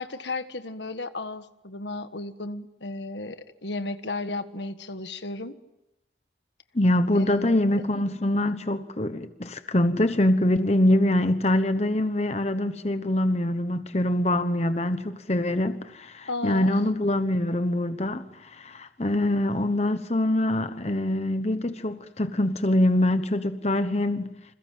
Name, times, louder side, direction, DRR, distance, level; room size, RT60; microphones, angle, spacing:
voice 1, 0.0-5.5 7.1-8.0 16.3-16.7, left 2 dB, 75° left, 1.6 m, -34 dB
voice 2, 6.7-24.3, left 1 dB, 35° left, 1.1 m, -24 dB
28.5 x 27.0 x 7.7 m
head